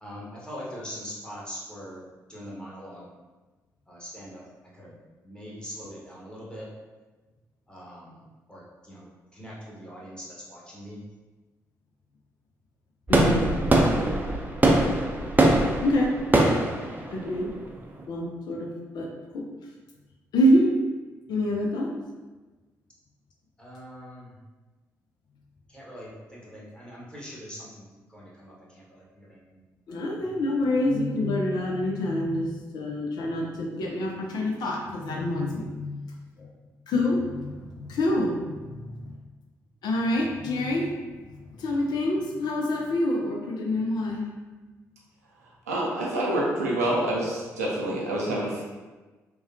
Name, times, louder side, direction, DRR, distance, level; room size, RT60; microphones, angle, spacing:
voice 1, 0.0-2.0 2.3-3.1 3.9-4.4 4.7-5.0 5.2-6.7 7.7-8.2 8.5-9.0 9.3-11.0 23.6-24.3 25.7-29.6 29.9-30.3, equal, 10° left, -6 dB, 1.2 m, -42 dB
voice 2, 13.1-13.5 15.8-16.1 17.1-17.5 18.1-19.1 19.3-19.5 20.3-20.7 21.3-21.9 29.9-36.0 36.4-36.5 36.9-39.0 39.8-41.0 41.6-44.3, left 1 dB, 60° left, 0 dB, 0.5 m, -26 dB
sound 1, 13.1-18.0, right 1 dB, 20° right, 0.5 m, -22 dB
voice 3, 45.7-48.6, right 1 dB, 90° right, -4 dB, 0.5 m, -27 dB
3.3 x 2.2 x 2.7 m, 1.2 s
hypercardioid pair, 40°, 8 cm